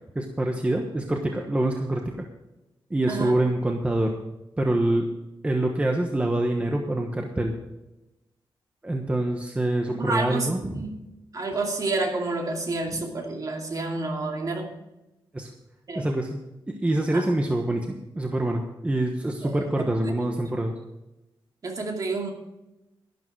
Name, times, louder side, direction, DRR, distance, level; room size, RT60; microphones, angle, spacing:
voice 1, 0.1-2.3 2.9-4.1 4.6-5.1 5.4-7.5 8.8-10.6 15.3-15.5 15.9-17.8 18.1-20.7, right 1 dB, 15° right, 2 dB, 1.2 m, -25 dB
voice 2, 9.9-11.0 11.3-14.7 15.9-16.1 17.1-17.3 19.4-19.6 20.0-20.3 21.6-22.3, right 2 dB, 40° right, 1 dB, 2.6 m, -29 dB
12.0 x 12.0 x 4.7 m, 0.95 s
wide cardioid pair, 155°, 9 cm